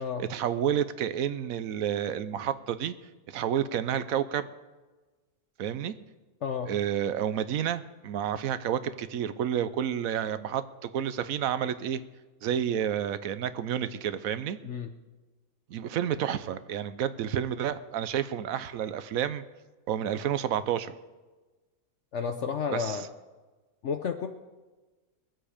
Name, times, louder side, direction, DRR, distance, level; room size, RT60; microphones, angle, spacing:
voice 1, 0.0-2.9 3.3-4.5 5.6-5.9 6.7-12.0 12.4-14.6 15.7-19.4 19.9-20.9 22.7-23.1, right 9 dB, 70° right, 13 dB, 1.1 m, -30 dB
voice 2, 22.1-23.0 23.8-24.3, left 6 dB, 60° left, 6 dB, 0.9 m, -31 dB
22.0 x 7.9 x 5.0 m, 1.2 s
omnidirectional pair, 1.6 m